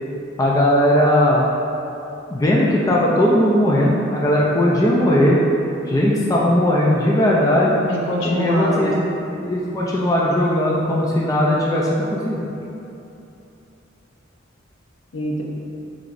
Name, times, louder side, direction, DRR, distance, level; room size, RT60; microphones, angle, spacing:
voice 1, 0.4-1.5 2.3-5.4 5.9-7.8 8.2-8.9 9.5-12.4, left 1 dB, 15° left, -5 dB, 0.3 m, -18 dB
voice 2, 7.9-9.1 15.1-15.4, equal, 70° left, -3 dB, 0.7 m, -24 dB
4.6 x 3.8 x 2.5 m, 2.8 s
head